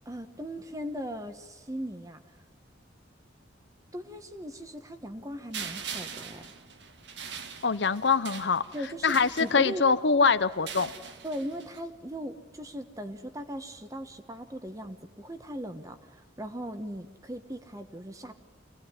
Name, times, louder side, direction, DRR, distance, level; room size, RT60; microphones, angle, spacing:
voice 1, 0.0-2.2 3.9-6.4 8.7-9.9 11.2-18.3, equal, 20° right, 8 dB, 1.3 m, -38 dB
sound 1, 5.5-10.0 10.5-11.8, right 6 dB, 75° right, 1.6 m, -42 dB
voice 2, 7.6-8.6 9.0-10.9, left 5 dB, 70° left, 13 dB, 0.8 m, -24 dB
25.0 x 18.5 x 9.8 m, 1.2 s
head